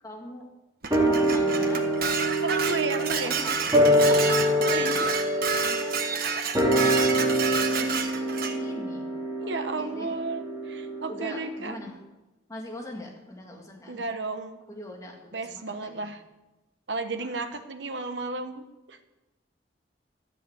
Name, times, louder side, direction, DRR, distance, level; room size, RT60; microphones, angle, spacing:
voice 1, 0.0-0.5 1.0-1.9 3.2-3.5 4.0-4.9 5.5-6.0 7.7-9.1 9.4-10.1 11.1-11.9 12.5-14.0 14.7-16.0, left 1 dB, 20° left, 0 dB, 2.3 m, -42 dB
Dishes pots and pans, 0.8-8.5, right 6 dB, 55° right, 1.3 m, -29 dB
sound 1, 0.9-11.5 11.8-11.9, equal, 20° right, 3.7 m, -25 dB
voice 2, 2.4-3.4 4.1-4.2 4.6-5.1 6.9-7.1 9.4-11.8 13.9-14.6 15.3-16.2 16.9-19.0, right 3 dB, 75° right, 7 dB, 1.1 m, -33 dB
13.5 x 7.3 x 8.3 m, 1.0 s
head